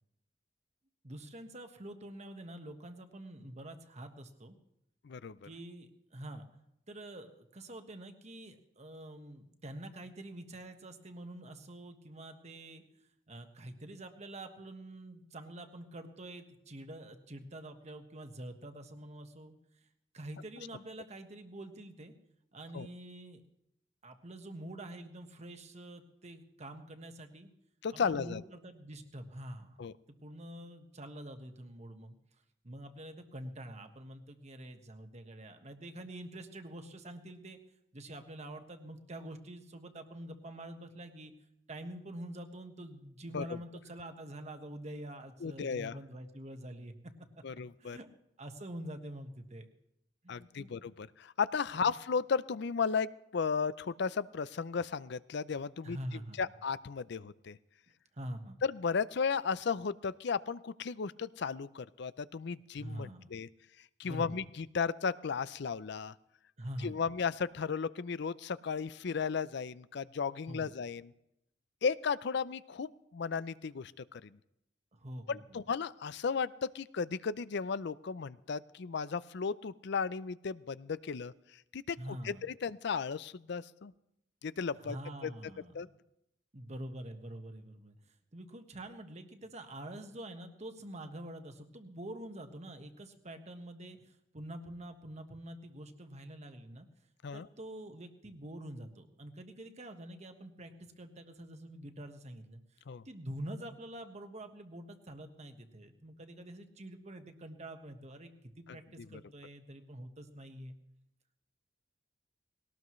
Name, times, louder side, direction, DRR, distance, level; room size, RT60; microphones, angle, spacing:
voice 1, 1.0-4.6 5.4-6.5 6.9-12.8 13.3-19.5 20.1-22.1 22.5-23.4 24.0-27.5 27.9-29.8 30.2-32.2 32.6-37.6 37.9-41.3 41.7-46.9 47.8-48.1 48.4-49.7 50.2-50.9 51.7-51.9 55.8-56.4 58.1-58.6 62.8-63.3 64.0-64.4 66.6-67.0 70.5-70.7 74.9-75.6 82.0-82.5 84.8-85.9 86.5-96.9 97.3-110.7, right 1 dB, 40° right, 6 dB, 1.4 m, -46 dB
voice 2, 5.0-5.5 22.7-22.9 27.8-28.4 29.8-29.9 43.3-43.4 45.4-45.9 47.4-48.0 50.3-56.0 56.4-57.6 58.6-63.5 64.0-66.1 66.8-71.1 71.8-74.4 75.3-81.3 81.7-82.0 82.2-83.9 84.4-85.0 85.2-85.3 85.7-85.9 97.2-97.5 102.9-103.0 109.1-109.2, left 5 dB, 65° left, 17 dB, 0.5 m, -35 dB
20.0 x 18.5 x 3.2 m, 0.80 s
head